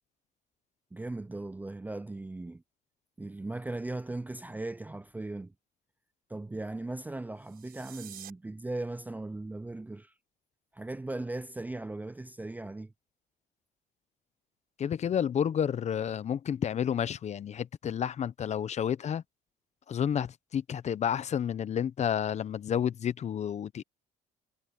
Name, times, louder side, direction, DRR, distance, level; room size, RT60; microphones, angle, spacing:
voice 1, 0.9-2.6 3.2-5.5 6.3-10.1 10.7-12.9, right 2 dB, 10° right, 0.5 m, -38 dB
sound 1, 7.3-8.3, right 10 dB, 60° right, 5.8 m, -48 dB
voice 2, 14.8-19.2 19.9-23.8, left 8 dB, 40° left, 0.8 m, -30 dB
cardioid pair, 110°, 17 cm